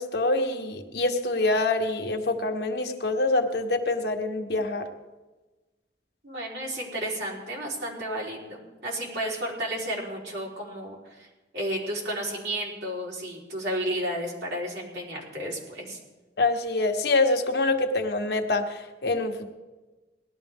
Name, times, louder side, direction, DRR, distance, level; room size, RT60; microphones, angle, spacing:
voice 1, 0.0-4.9 16.4-19.5, left 2 dB, 65° left, 5 dB, 1.2 m, -25 dB
voice 2, 6.2-11.3 11.5-16.0, right 1 dB, 80° right, -4 dB, 4.0 m, -32 dB
18.5 x 12.0 x 3.6 m, 1.2 s
head